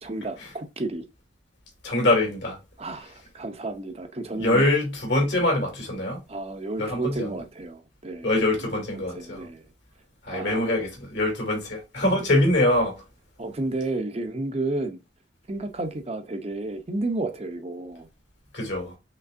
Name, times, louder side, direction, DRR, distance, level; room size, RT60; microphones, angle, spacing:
voice 1, 0.0-1.0 2.8-4.6 6.3-8.3 8.6-8.7 8.9-9.7 10.3-10.8 13.4-15.0 15.5-18.1, right 2 dB, 30° right, 0.6 m, -32 dB
voice 2, 1.8-2.6 4.4-6.2 6.8-7.4 8.2-9.4 10.2-12.9 18.5-19.0, left 1 dB, 65° left, 2.3 m, -24 dB
5.2 x 3.2 x 2.5 m
head